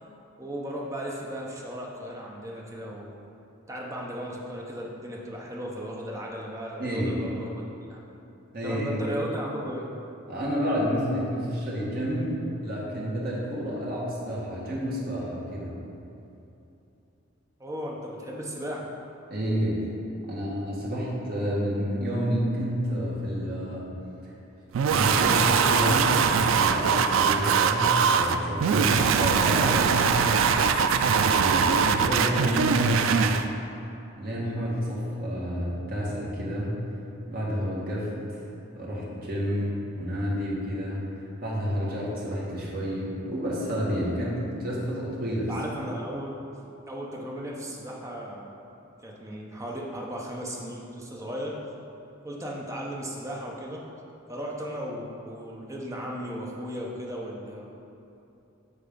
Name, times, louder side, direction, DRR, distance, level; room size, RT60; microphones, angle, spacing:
voice 1, 0.4-3.2 3.7-7.6 7.9-8.0 8.6-9.9 17.6-18.9 45.5-46.3 46.9-48.5 49.0-51.6 52.2-53.8 54.3-57.7, equal, 15° right, -3 dB, 0.8 m, -36 dB
voice 2, 6.8-7.2 8.5-9.0 10.3-15.8 19.3-19.9 20.3-23.9 24.9-26.2 26.5-29.9 31.0-33.3 34.2-36.8 37.3-38.1 38.7-45.5, equal, 45° right, -6 dB, 1.6 m, -29 dB
sound 1, 24.7-33.5, right 6 dB, 70° right, 0.3 m, -22 dB
6.9 x 4.2 x 5.2 m, 2.8 s
head